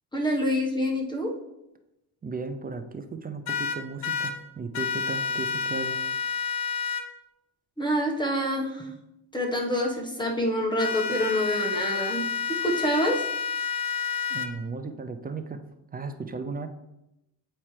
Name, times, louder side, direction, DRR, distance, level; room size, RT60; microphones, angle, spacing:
voice 1, 0.1-1.3 7.8-8.9 9.3-13.2, equal, 10° left, 0 dB, 1.2 m, -27 dB
voice 2, 2.2-6.0 14.3-15.6 15.9-16.7, right 4 dB, 20° right, 8 dB, 0.4 m, -35 dB
sound 1, 3.5-4.3 4.7-7.0 10.8-14.5, left 6 dB, 60° left, 0.9 m, -29 dB
8.8 x 4.3 x 3.2 m, 0.91 s
cardioid pair, 110°, 41 cm